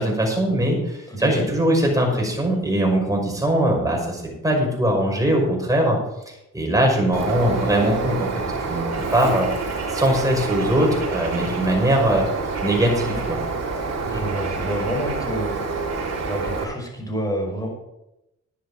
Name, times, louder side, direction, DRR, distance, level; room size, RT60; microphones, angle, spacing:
voice 1, 0.0-6.0 6.5-9.5 9.9-12.3 12.6-13.4, right 1 dB, 10° right, 0 dB, 5.7 m, -21 dB
voice 2, 1.1-1.5 14.1-15.5 16.3-17.7, right 1 dB, 10° left, 0 dB, 5.8 m, -28 dB
Bird, 7.1-16.6, right 4 dB, 60° right, 3.6 m, -27 dB
12.0 x 10.5 x 5.0 m, 0.89 s
cardioid pair, 90°, 30 cm